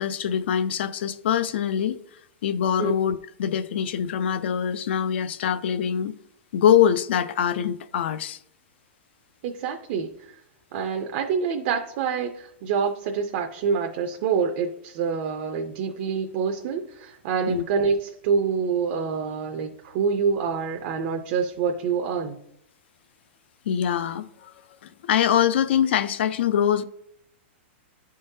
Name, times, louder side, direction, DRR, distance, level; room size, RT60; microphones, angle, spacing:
voice 1, 0.0-2.0 2.4-6.1 6.5-8.4 17.5-17.6 23.7-24.5 24.8-26.8, left 9 dB, 60° left, 0.4 m, -23 dB
voice 2, 9.4-10.4 10.7-22.4, right 6 dB, 40° right, 0.5 m, -26 dB
10.0 x 3.7 x 2.7 m
supercardioid pair, 165°, 7 cm